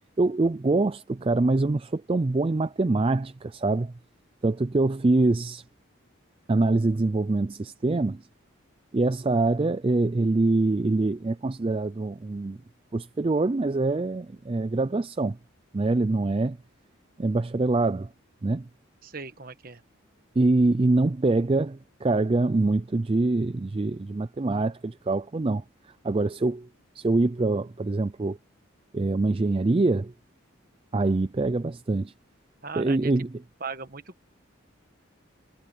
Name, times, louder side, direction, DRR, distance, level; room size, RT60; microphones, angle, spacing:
voice 1, 0.2-3.9 4.4-5.6 6.5-8.2 8.9-12.6 12.9-15.4 15.7-16.6 17.2-18.1 18.4-18.7 20.4-25.6 26.0-26.7 27.0-28.4 28.9-30.1 30.9-32.1 32.8-33.3, right 2 dB, 25° right, 0.4 m, -24 dB
voice 2, 19.0-19.8 32.6-33.1 33.6-34.2, right 5 dB, 45° right, 1.4 m, -38 dB
head